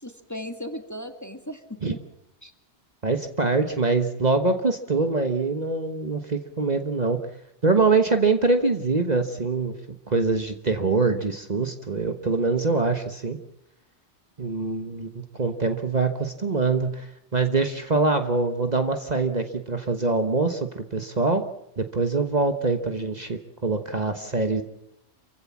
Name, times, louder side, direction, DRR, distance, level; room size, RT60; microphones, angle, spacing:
voice 1, 0.0-2.0 2.4-2.5, equal, 15° left, 7 dB, 1.9 m, -37 dB
voice 2, 3.0-7.2 7.6-9.7 10.1-13.4 14.4-15.1 15.4-21.4 21.8-24.6, right 3 dB, 40° right, 7 dB, 1.3 m, -24 dB
28.0 x 16.0 x 7.3 m, 0.81 s
omnidirectional pair, 1.2 m